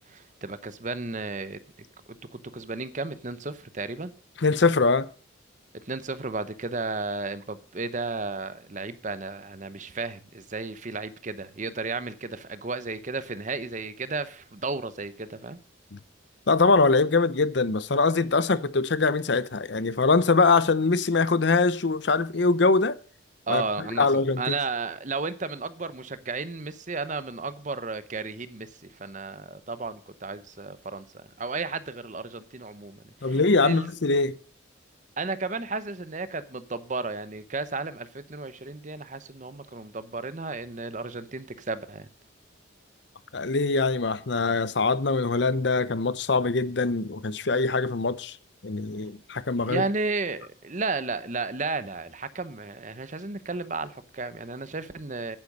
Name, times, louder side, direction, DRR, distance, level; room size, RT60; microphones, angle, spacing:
voice 1, 0.1-1.6 2.3-4.1 5.8-15.6 23.5-33.9 35.2-42.1 49.6-55.4, right 3 dB, 40° right, 0.9 m, -33 dB
voice 2, 4.4-5.1 15.9-16.0 16.5-23.0 23.5-23.6 24.0-24.4 33.2-34.4 43.3-48.4 48.6-49.8, left 3 dB, 60° left, 0.7 m, -23 dB
11.0 x 9.7 x 5.4 m
head